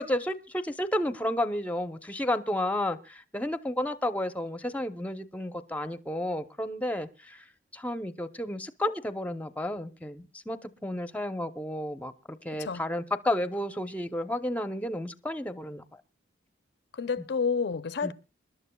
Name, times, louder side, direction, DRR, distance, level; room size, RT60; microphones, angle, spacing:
voice 1, 0.0-7.4 7.7-15.8 18.0-18.1, left 1 dB, 10° left, 0.7 m, -32 dB
voice 2, 12.5-12.8 16.9-18.1, left 5 dB, 60° left, 0.6 m, -29 dB
27.5 x 11.5 x 2.2 m
head